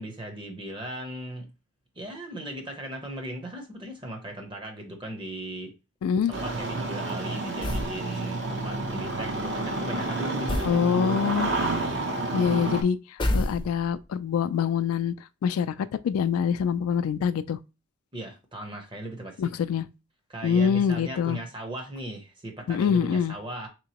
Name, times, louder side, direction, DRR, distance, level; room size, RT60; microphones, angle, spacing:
voice 1, 0.0-1.5 2.0-5.7 6.3-11.2 18.1-19.5 20.3-23.7, right 1 dB, 25° right, 0.7 m, -38 dB
voice 2, 6.0-6.3 10.6-11.5 12.3-13.0 13.3-15.1 15.4-17.6 19.4-19.9 20.4-21.4 22.7-23.4, left 7 dB, 90° left, 0.3 m, -25 dB
Engine starting, 6.3-12.8, right 2 dB, 55° right, 0.7 m, -30 dB
sound 1, 7.6-8.0 10.5-10.8 13.2-14.0, left 1 dB, 20° left, 0.5 m, -27 dB
3.5 x 2.9 x 2.9 m
head